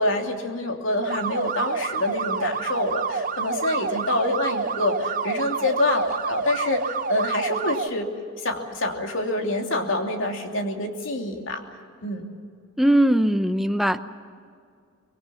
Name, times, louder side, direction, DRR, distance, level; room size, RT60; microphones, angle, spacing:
voice 1, 0.0-8.1 8.4-11.6 12.0-12.3, left 2 dB, 65° left, 3 dB, 3.0 m, -26 dB
sound 1, 1.0-7.9, right 5 dB, 40° right, 0.8 m, -28 dB
voice 2, 12.8-14.0, right 1 dB, ahead, 8 dB, 0.8 m, -20 dB
24.5 x 22.5 x 7.1 m, 2.2 s
head